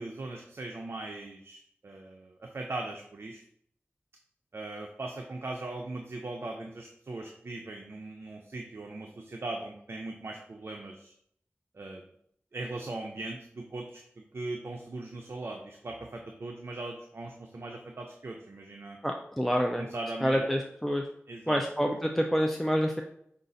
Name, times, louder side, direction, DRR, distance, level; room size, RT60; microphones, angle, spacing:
voice 1, 0.0-3.4 4.5-11.1 11.7-12.0 12.5-19.0 19.8-20.5 21.3-21.6, right 2 dB, 60° right, 2 dB, 0.5 m, -39 dB
voice 2, 19.0-19.9 20.2-21.0 21.5-23.0, equal, 5° left, 2 dB, 0.4 m, -27 dB
5.2 x 2.4 x 3.9 m, 0.70 s
wide cardioid pair, 65°, 5 cm